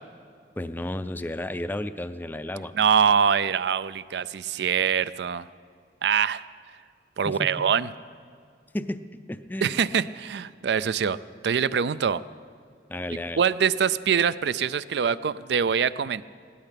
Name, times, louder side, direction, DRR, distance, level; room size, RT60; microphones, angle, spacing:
voice 1, 0.6-2.7 7.2-7.7 8.7-9.0 9.3-9.8 12.9-13.4, left 1 dB, 10° left, 11 dB, 0.4 m, -32 dB
voice 2, 2.7-5.5 6.0-6.4 7.2-7.9 9.6-11.2 11.4-12.2 13.4-16.2, right 7 dB, 70° right, 17 dB, 0.4 m, -24 dB
17.0 x 12.0 x 5.8 m, 2.3 s
head